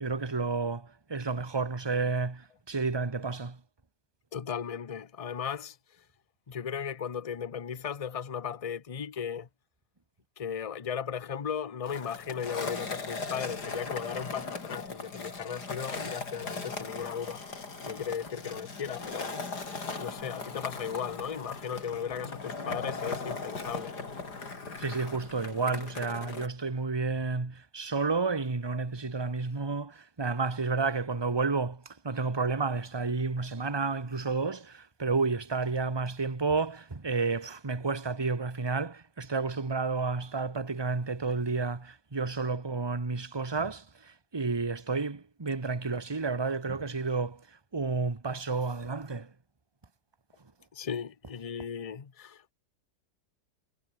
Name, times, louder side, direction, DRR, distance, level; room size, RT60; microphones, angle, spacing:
voice 1, 0.0-3.6 24.8-47.4 47.7-49.3, right 4 dB, 15° right, 1.3 m, -31 dB
voice 2, 4.3-5.8 6.5-9.5 10.4-17.4 17.8-19.3 19.9-24.0 50.7-52.5, left 7 dB, 40° left, 0.5 m, -36 dB
Skateboard, 11.8-26.5, left 4 dB, 70° left, 4.2 m, -39 dB
omnidirectional pair, 1.8 m